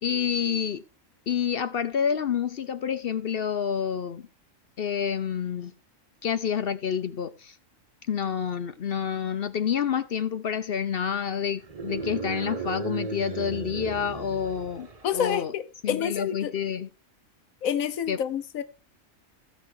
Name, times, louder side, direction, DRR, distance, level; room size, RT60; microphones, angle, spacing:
voice 1, 0.0-0.8 1.3-4.3 4.8-5.7 6.2-7.6 8.1-15.5 15.8-16.9 18.1-18.2, left 8 dB, 55° left, 0.8 m, -28 dB
sound 1, 11.6-15.3, right 5 dB, 30° right, 1.0 m, -35 dB
voice 2, 15.0-16.5 17.6-18.6, left 9 dB, 90° left, 1.2 m, -28 dB
15.0 x 5.9 x 4.6 m
omnidirectional pair, 1.4 m